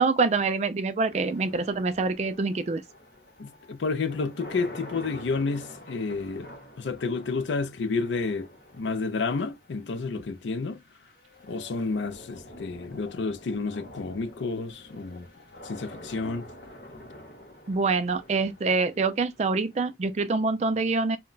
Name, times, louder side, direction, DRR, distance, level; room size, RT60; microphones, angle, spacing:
voice 1, 0.0-2.8 17.7-21.2, right 4 dB, 40° right, 0.3 m, -25 dB
sound 1, 1.1-20.1, left 1 dB, 55° left, 0.8 m, -47 dB
voice 2, 3.4-6.5 6.8-8.5 8.7-10.8 11.4-15.3 15.6-16.5, left 4 dB, 85° left, 0.5 m, -30 dB
2.2 x 2.1 x 3.8 m
head